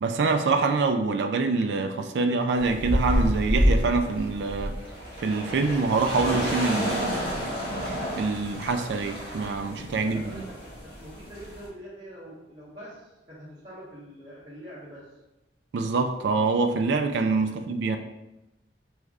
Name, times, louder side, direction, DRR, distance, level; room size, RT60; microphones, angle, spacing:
voice 1, 0.0-4.8 5.2-7.2 8.2-10.4 15.7-18.0, right 3 dB, 65° right, 6 dB, 0.3 m, -25 dB
sound 1, 2.6-11.7, equal, 70° left, 1.4 m, -29 dB
voice 2, 10.0-10.5 10.8-15.0 17.4-17.6, equal, 30° right, -13 dB, 1.3 m, -44 dB
5.1 x 3.3 x 2.4 m, 0.96 s
head